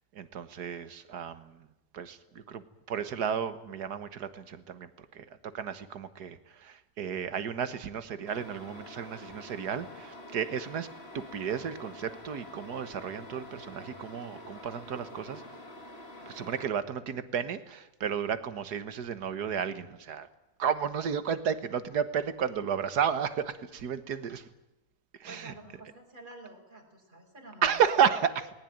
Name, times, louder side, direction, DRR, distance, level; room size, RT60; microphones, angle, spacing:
voice 1, 0.1-1.7 1.9-5.3 5.5-10.9 11.1-15.4 16.2-20.3 20.6-24.5 25.2-25.5 27.6-28.5, right 7 dB, 80° right, 12 dB, 1.9 m, -32 dB
sound 1, 8.3-16.7, left 1 dB, 40° left, 2.9 m, -47 dB
voice 2, 25.3-27.8, right 2 dB, 30° right, 0 dB, 5.8 m, -49 dB
19.5 x 19.5 x 9.2 m, 0.94 s
omnidirectional pair, 1.7 m